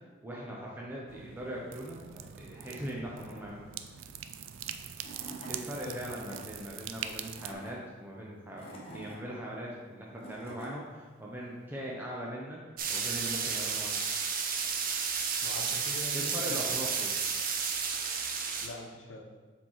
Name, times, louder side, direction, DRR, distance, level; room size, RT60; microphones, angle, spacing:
voice 1, 0.2-3.7 5.5-12.6 12.9-14.0 16.1-17.1, equal, 10° right, -4 dB, 0.7 m, -40 dB
sound 1, 1.1-7.5, right 9 dB, 85° right, 0.4 m, -43 dB
Tools / Wood, 4.6-4.7 5.0-5.6 6.0-6.4 7.1-7.7 8.4-9.2 9.9-10.7, right 2 dB, 30° left, 1.0 m, -46 dB
voice 2, 5.7-6.2 15.4-16.7 18.6-19.2, left 1 dB, 85° left, 2 dB, 0.9 m, -43 dB
sound 2, 12.8-18.7, right 6 dB, 45° right, 0.6 m, -32 dB
7.2 x 4.4 x 3.1 m, 1.4 s
head